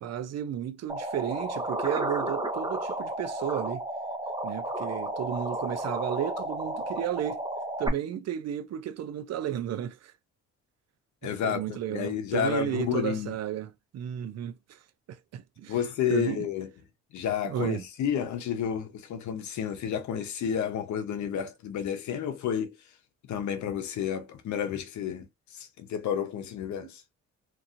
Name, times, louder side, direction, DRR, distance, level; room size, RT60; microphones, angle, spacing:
voice 1, 0.0-3.8 4.4-7.4 7.8-10.1 11.2-14.8 15.1-15.8 16.1-16.4 17.4-17.8, right 10 dB, 60° right, 0.5 m, -33 dB
sound 1, 0.9-7.9, right 1 dB, 15° right, 0.9 m, -32 dB
voice 2, 11.2-13.3 15.7-16.7 17.1-22.8 23.3-27.0, left 8 dB, 70° left, 0.8 m, -31 dB
2.9 x 2.7 x 2.5 m
cardioid pair, 90°, 30 cm